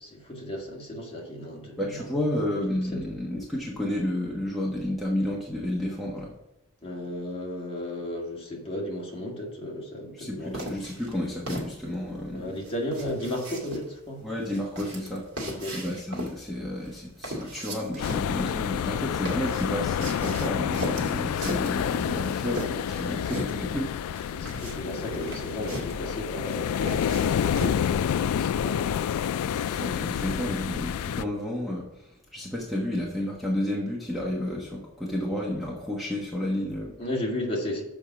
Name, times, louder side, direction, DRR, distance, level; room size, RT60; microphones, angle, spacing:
voice 1, 0.0-2.1 2.7-3.2 6.8-10.7 12.3-14.3 15.4-15.8 23.1-23.3 24.3-29.0 37.0-37.8, left 1 dB, 25° left, -2 dB, 2.0 m, -35 dB
voice 2, 1.8-6.3 10.1-12.6 14.2-15.3 15.7-23.9 29.4-36.9, left 1 dB, ahead, -4 dB, 1.2 m, -31 dB
sound 1, 10.5-28.0, equal, 65° right, 2.1 m, -38 dB
sound 2, 18.0-31.2, left 8 dB, 85° left, 0.3 m, -28 dB
7.1 x 5.3 x 5.9 m, 0.97 s
head